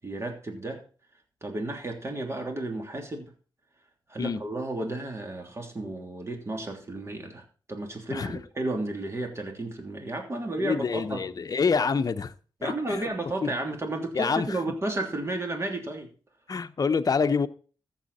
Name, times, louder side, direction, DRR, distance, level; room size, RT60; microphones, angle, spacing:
voice 1, 0.0-0.8 1.4-3.3 4.1-7.4 7.7-11.2 12.6-16.1, right 2 dB, 30° right, 3 dB, 3.1 m, -33 dB
voice 2, 10.6-12.3 12.6-13.0 13.4-13.5 14.1-14.5 16.5-17.5, left 5 dB, 45° left, 9 dB, 0.8 m, -26 dB
14.5 x 7.5 x 4.2 m, 0.38 s
cardioid pair, 80°, 9 cm